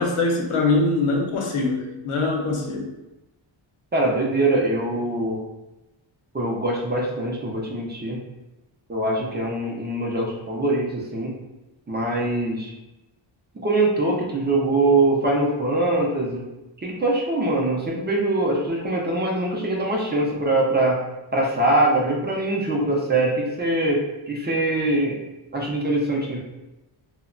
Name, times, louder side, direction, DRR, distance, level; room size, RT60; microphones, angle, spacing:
voice 1, 0.0-2.9, left 3 dB, 85° left, 0 dB, 0.7 m, -23 dB
voice 2, 3.9-5.4 6.3-8.2 8.9-11.3 11.9-12.7 13.6-16.4 16.8-21.0 21.3-25.2 25.5-26.4, right 2 dB, 20° right, -2 dB, 0.4 m, -23 dB
2.2 x 2.1 x 3.6 m, 1.0 s
wide cardioid pair, 135°, 49 cm